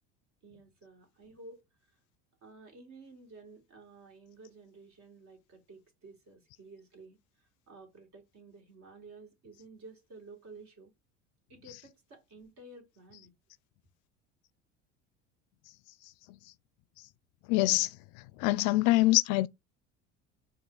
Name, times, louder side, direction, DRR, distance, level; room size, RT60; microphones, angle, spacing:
voice 1, 0.4-1.6 2.4-10.9 11.5-13.3, right 3 dB, 50° right, 2.4 m, -53 dB
voice 2, 17.5-18.0 18.4-19.5, left 18 dB, 60° left, 0.5 m, -24 dB
4.6 x 2.9 x 3.8 m
hypercardioid pair, 80°, 35 cm